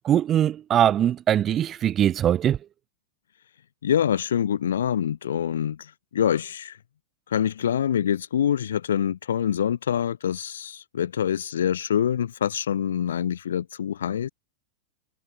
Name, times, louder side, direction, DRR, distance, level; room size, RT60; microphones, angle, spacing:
voice 1, 0.0-2.6, right 10 dB, 30° right, 0.4 m, -21 dB
voice 2, 3.8-6.8 7.3-14.3, left 9 dB, 85° left, 0.4 m, -25 dB
hypercardioid pair, 120°, 0 cm